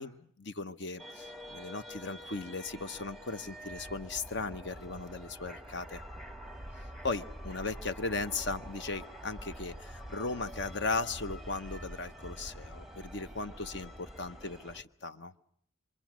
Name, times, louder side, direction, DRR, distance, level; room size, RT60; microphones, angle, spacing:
voice 1, 0.0-6.0 7.0-15.3, left 3 dB, 60° left, 11 dB, 1.0 m, -37 dB
sound 1, 1.0-14.8, equal, ahead, 1.0 m, -46 dB
26.5 x 24.5 x 6.2 m, 0.64 s
head